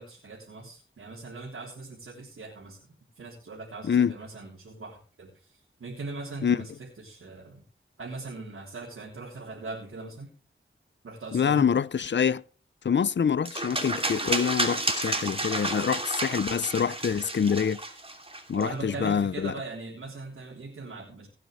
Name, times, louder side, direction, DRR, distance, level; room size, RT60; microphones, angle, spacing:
voice 1, 0.0-7.6 8.0-10.3 11.0-11.7 18.5-21.3, right 3 dB, 90° right, 3.4 m, -40 dB
voice 2, 3.8-4.1 6.4-6.6 11.3-12.4 12.8-17.8 18.5-19.5, left 7 dB, 60° left, 0.6 m, -26 dB
sound 1, 13.5-18.6, right 2 dB, 25° right, 2.8 m, -31 dB
18.0 x 9.4 x 3.2 m
wide cardioid pair, 55°, 21 cm